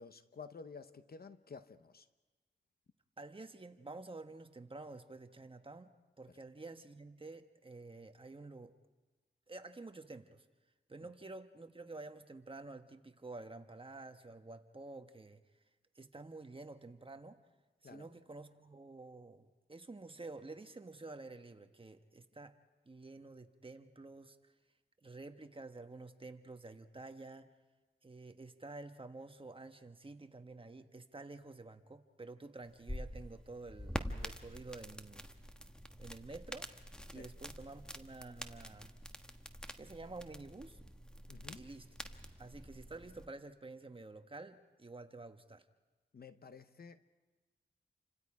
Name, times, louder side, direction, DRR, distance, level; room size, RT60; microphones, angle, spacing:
voice 1, 0.0-2.1 6.3-6.4 17.8-18.1 37.1-37.3 41.3-41.6 46.1-47.0, left 5 dB, 55° left, 0.9 m, -52 dB
voice 2, 3.2-5.9 6.2-8.7 9.5-10.4 10.9-15.4 15.9-17.4 17.8-22.5 22.8-24.4 25.0-27.5 28.0-35.3 36.0-36.7 37.1-38.9 39.8-40.8 41.6-41.9 42.4-45.6, right 3 dB, 30° right, 1.3 m, -50 dB
sound 1, 32.6-43.3, equal, 5° left, 1.2 m, -47 dB
30.0 x 25.5 x 4.9 m
wide cardioid pair, 80°, 19 cm